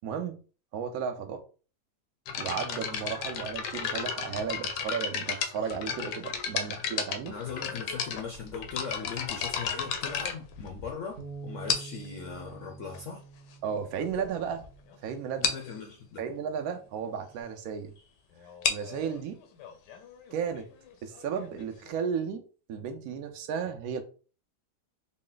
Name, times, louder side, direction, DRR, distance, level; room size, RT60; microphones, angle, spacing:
voice 1, 0.0-0.4 0.7-1.4 2.4-7.3 13.6-14.6 15.0-15.6 16.2-17.9 18.7-19.4 20.3-20.6 21.0-22.4 22.7-24.0, right 7 dB, 65° right, 1.0 m, -34 dB
sound 1, 2.3-11.1 11.7-12.1 12.9-13.0 13.7-13.8 14.0-14.2 14.5-14.7 14.9-15.0 15.4-15.7 18.4-21.9, left 6 dB, 85° left, 1.2 m, -33 dB
voice 2, 7.3-13.2 15.4-16.2, left 6 dB, 65° left, 0.8 m, -39 dB
Bass guitar, 11.2-15.6 16.3-17.4, right 5 dB, 85° right, 0.4 m, -48 dB
4.0 x 2.1 x 3.8 m
omnidirectional pair, 1.8 m